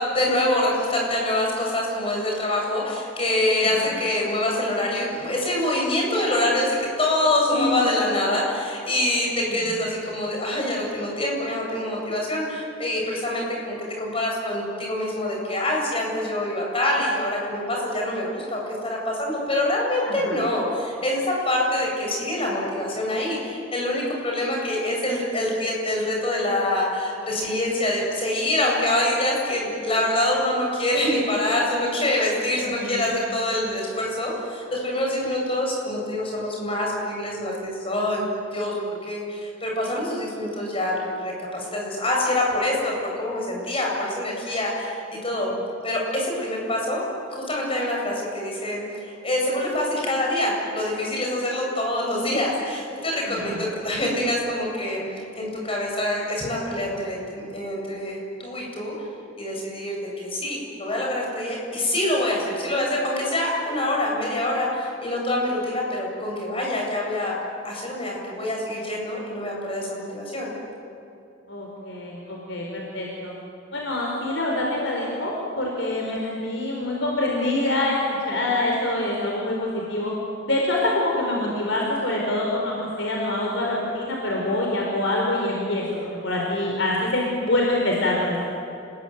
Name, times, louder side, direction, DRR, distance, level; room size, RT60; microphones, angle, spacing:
voice 1, 0.1-38.3 38.5-45.5 45.8-47.0 47.5-55.0 55.4-58.9 59.4-67.4 67.6-70.5, left 1 dB, 30° left, -1 dB, 7.8 m, -25 dB
voice 2, 3.6-3.9 7.5-7.8 9.5-9.6 20.0-20.4 32.6-33.1 53.2-53.6 71.5-73.3 73.7-80.1 80.5-85.8 86.2-88.4, left 1 dB, 70° left, -2 dB, 4.6 m, -25 dB
29.5 x 21.5 x 9.5 m, 2.8 s
head